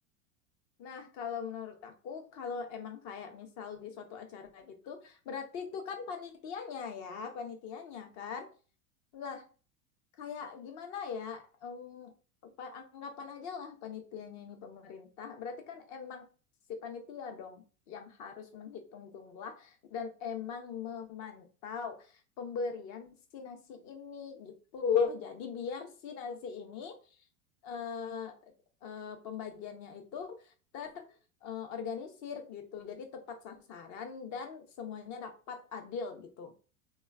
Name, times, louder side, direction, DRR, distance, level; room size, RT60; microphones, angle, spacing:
voice 1, 0.8-8.5 9.1-9.4 10.2-12.1 12.4-16.2 16.7-27.2 27.6-28.3 28.8-36.5, left 6 dB, 40° left, 5 dB, 0.8 m, -40 dB
3.0 x 2.3 x 2.3 m, 0.36 s
hypercardioid pair, 95°, 43 cm